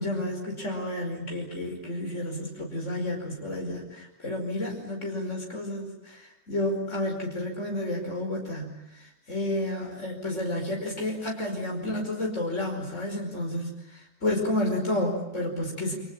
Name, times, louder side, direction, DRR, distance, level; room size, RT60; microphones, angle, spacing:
voice 1, 0.0-15.9, left 1 dB, 70° left, 1 dB, 5.5 m, -31 dB
30.0 x 25.5 x 7.4 m, 0.86 s
omnidirectional pair, 1.3 m